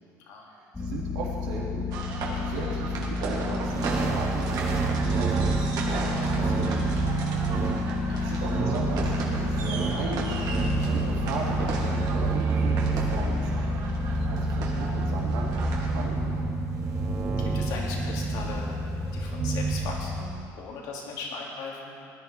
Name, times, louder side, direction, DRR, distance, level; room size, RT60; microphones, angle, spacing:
voice 1, 0.5-1.9 2.2-5.8 6.2-7.3 7.7-11.8 12.1-13.7 14.3-15.5 15.8-16.4, right 4 dB, 85° right, -4 dB, 3.2 m, -37 dB
sound 1, 0.7-20.4, left 3 dB, 15° left, 1.6 m, -31 dB
sound 2, 1.9-16.1, right 4 dB, 65° right, 2.5 m, -37 dB
sound 3, 3.6-20.3, right 6 dB, 45° right, 2.1 m, -30 dB
voice 2, 8.1-8.4 17.4-18.9 19.1-22.1, left 4 dB, 75° left, -2 dB, 3.1 m, -38 dB
19.0 x 11.0 x 4.6 m, 2.4 s
supercardioid pair, 100°, 7 cm